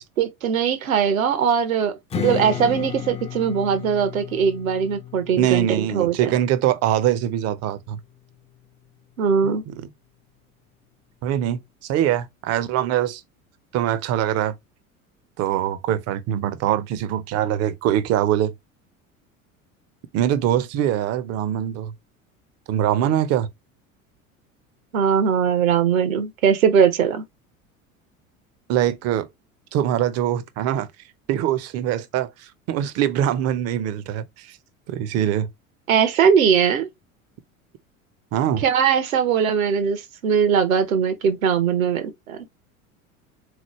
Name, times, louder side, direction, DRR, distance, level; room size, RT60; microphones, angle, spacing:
voice 1, 0.2-6.3 9.2-9.6 24.9-27.2 35.9-36.9 38.6-42.4, right 7 dB, 75° right, 0.9 m, -20 dB
Strum, 2.1-7.3, left 9 dB, 15° left, 0.4 m, -34 dB
voice 2, 5.4-8.0 9.7-9.9 11.2-13.2 13.7-14.5 15.4-18.5 20.1-21.9 22.7-23.5 28.7-29.3 29.7-30.9 31.3-34.6 34.9-35.5 38.3-38.6, right 11 dB, 35° right, 0.6 m, -23 dB
3.8 x 3.1 x 3.0 m
figure-of-eight pair, 75°, 42 cm